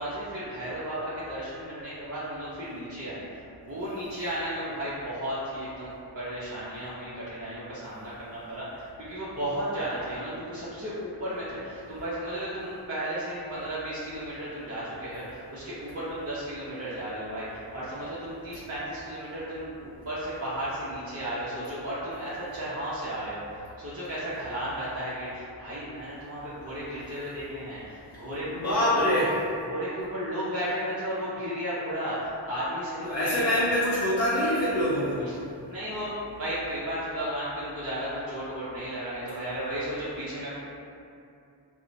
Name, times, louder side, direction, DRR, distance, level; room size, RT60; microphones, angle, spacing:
voice 1, 0.0-29.0 29.6-33.7 35.2-35.4 35.7-40.6, equal, 35° right, -10 dB, 0.6 m, -34 dB
voice 2, 28.4-29.4 33.0-35.3, left 1 dB, 40° left, -9 dB, 0.6 m, -25 dB
2.7 x 2.0 x 2.5 m, 2.6 s
cardioid pair, 45°, 44 cm